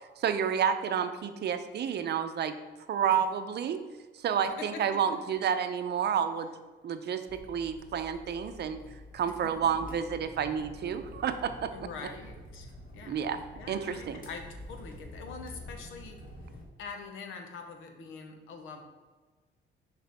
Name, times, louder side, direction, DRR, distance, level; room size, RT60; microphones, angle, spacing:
voice 1, 0.2-2.5 2.9-3.8 4.1-6.5 6.8-8.8 9.1-11.7 13.1-13.4 13.7-14.2, right 8 dB, 55° right, 9 dB, 0.6 m, -30 dB
voice 2, 4.6-5.0 9.3-9.4 11.7-13.2 13.5-16.2 16.8-18.8, left 4 dB, 90° left, 5 dB, 0.9 m, -44 dB
sound 1, 7.3-16.7, left 1 dB, 45° left, 1.4 m, -48 dB
6.4 x 5.0 x 3.5 m, 1.3 s
cardioid pair, 90°, 20 cm